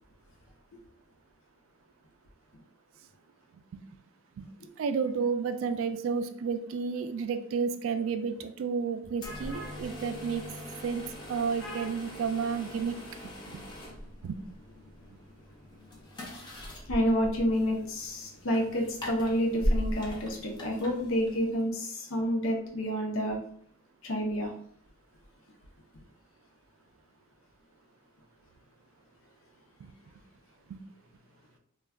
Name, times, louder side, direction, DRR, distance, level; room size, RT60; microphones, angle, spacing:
voice 1, 4.8-10.5 10.8-13.0 13.5-13.6 14.2-14.4 29.8-29.9 30.7-30.8, right 5 dB, 75° right, 0.3 m, -31 dB
sound 1, 9.1-21.7, equal, 20° left, 0.5 m, -39 dB
voice 2, 9.2-9.7 11.6-11.9 16.9-23.4 24.0-24.5, equal, 75° left, 0.7 m, -29 dB
2.2 x 2.2 x 3.5 m
head